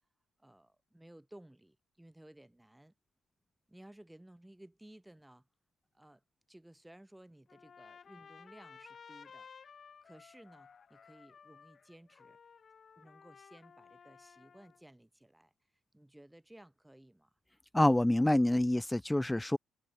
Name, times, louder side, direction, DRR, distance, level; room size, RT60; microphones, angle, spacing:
voice 1, 0.4-2.9 3.7-5.5 5.9-6.2 6.5-9.5 10.0-12.4 13.0-15.5 15.9-17.4, right 1 dB, 5° right, 6.0 m, -57 dB
Trumpet, 7.5-14.8, left 6 dB, 40° left, 2.5 m, -56 dB
voice 2, 17.7-19.6, left 1 dB, 10° left, 0.7 m, -27 dB
figure-of-eight pair, 45°, 0 cm